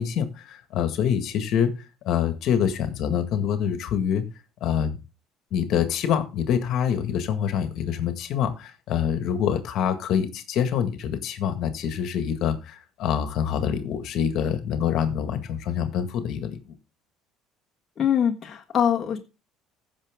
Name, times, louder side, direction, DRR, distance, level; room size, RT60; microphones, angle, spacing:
voice 1, 0.0-4.3 4.6-5.0 5.5-16.8, left 8 dB, 60° left, 8 dB, 1.8 m, -26 dB
voice 2, 18.0-19.2, left 9 dB, 35° left, 1 dB, 1.5 m, -23 dB
15.0 x 6.2 x 3.7 m, 0.31 s
cardioid pair, 115°, 0 cm